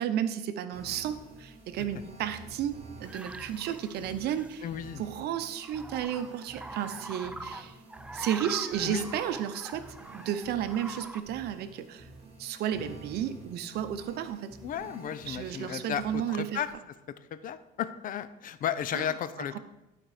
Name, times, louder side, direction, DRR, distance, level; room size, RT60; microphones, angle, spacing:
voice 1, 0.0-4.6 5.0-7.8 8.1-9.9 10.1-12.1 12.4-14.6 15.3-16.6 18.9-19.1, right 10 dB, 75° right, 11 dB, 0.7 m, -33 dB
sound 1, 0.7-16.7, right 2 dB, 40° right, 2.1 m, -49 dB
sound 2, 3.0-4.7 5.4-11.2, right 2 dB, 5° right, 0.5 m, -44 dB
voice 2, 4.6-5.0 8.8-9.1 14.6-16.7 17.3-19.6, left 9 dB, 55° left, 13 dB, 0.6 m, -34 dB
11.5 x 4.4 x 4.9 m, 0.97 s
cardioid pair, 110°, 17 cm